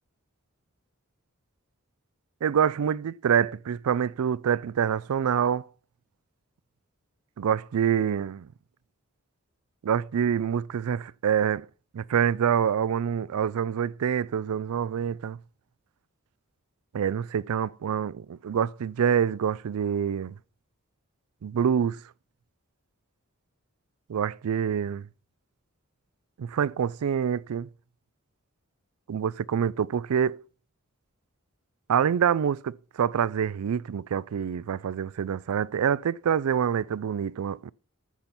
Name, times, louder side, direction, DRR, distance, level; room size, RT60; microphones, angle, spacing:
voice 1, 2.4-5.6 7.4-8.5 9.8-11.7 11.9-15.4 16.9-20.3 21.4-22.0 24.1-25.0 26.4-27.7 29.1-30.4 31.9-37.7, right 8 dB, 90° right, 0.4 m, -26 dB
14.0 x 5.9 x 4.3 m
head